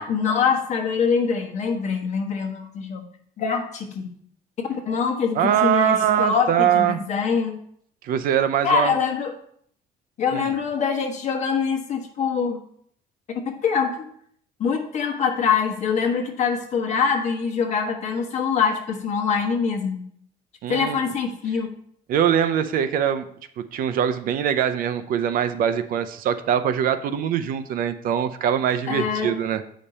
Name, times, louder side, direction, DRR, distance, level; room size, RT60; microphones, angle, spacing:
voice 1, 0.0-3.0 3.4-4.1 4.7-7.6 8.6-9.3 10.2-12.6 13.4-14.1 14.6-20.0 20.7-21.7 28.9-29.3, left 6 dB, 45° left, 3 dB, 1.4 m, -24 dB
voice 2, 5.4-7.0 8.0-8.9 10.3-10.6 20.6-21.0 22.1-23.3 23.6-29.6, right 9 dB, 60° right, 11 dB, 0.5 m, -22 dB
8.7 x 5.2 x 4.1 m, 0.65 s
cardioid pair, 160°, 17 cm